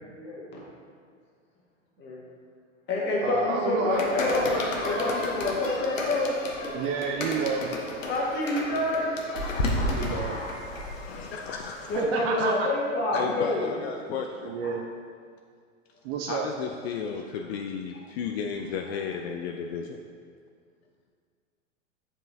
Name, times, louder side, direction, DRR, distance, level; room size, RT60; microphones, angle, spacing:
voice 1, 0.1-0.6 2.0-2.2 2.9-4.6 4.8-6.3 8.0-10.8 11.1-11.2 11.9-13.8, left 2 dB, 30° left, -4 dB, 1.6 m, -28 dB
voice 2, 3.2-4.0 6.7-7.7 9.9-10.4 12.0-12.7 14.4-14.9 16.0-16.5, right 5 dB, 35° right, 2 dB, 0.4 m, -29 dB
sound 1, 3.9-12.0, left 2 dB, 85° left, 1.0 m, -32 dB
voice 3, 11.1-12.5 13.1-14.5 16.3-20.0, left 6 dB, 55° left, 3 dB, 0.5 m, -34 dB
7.2 x 5.4 x 2.7 m, 2.1 s
hypercardioid pair, 100°, 38 cm